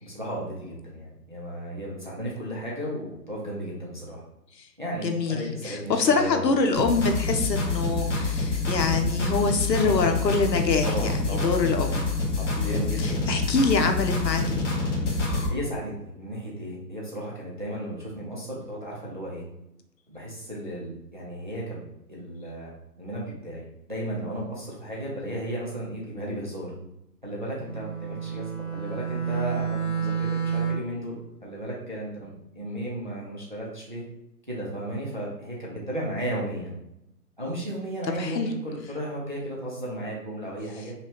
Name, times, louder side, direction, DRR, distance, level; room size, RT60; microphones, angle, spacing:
voice 1, 0.0-4.2 4.8-6.5 9.7-10.0 10.8-11.6 12.3-13.3 15.5-19.4 20.1-22.7 23.0-26.7 27.2-31.2 31.4-34.0 34.5-36.7 37.4-40.9, right 1 dB, 30° right, -4 dB, 0.7 m, -34 dB
voice 2, 5.0-12.0 12.6-14.7 38.2-38.5, left 4 dB, 80° left, 5 dB, 0.9 m, -25 dB
sound 1, 6.7-15.5, left 3 dB, 45° left, 1.1 m, -27 dB
Bowed string instrument, 27.6-31.0, right 7 dB, 20° left, 1.4 m, -30 dB
5.4 x 2.4 x 3.0 m, 0.84 s
hypercardioid pair, 180°, 50 cm